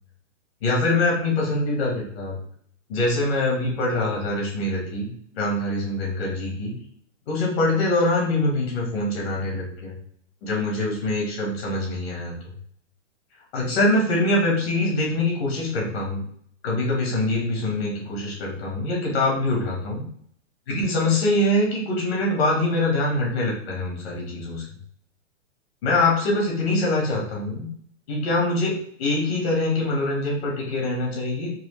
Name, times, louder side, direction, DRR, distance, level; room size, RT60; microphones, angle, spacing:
voice 1, 0.6-2.4 2.9-6.7 7.3-9.9 10.4-12.5 13.5-16.2 16.6-20.0 20.7-24.6 25.8-27.7 28.1-31.5, left 2 dB, 55° left, -3 dB, 1.5 m, -24 dB
4.7 x 2.4 x 3.2 m, 0.62 s
hypercardioid pair, 160°, 37 cm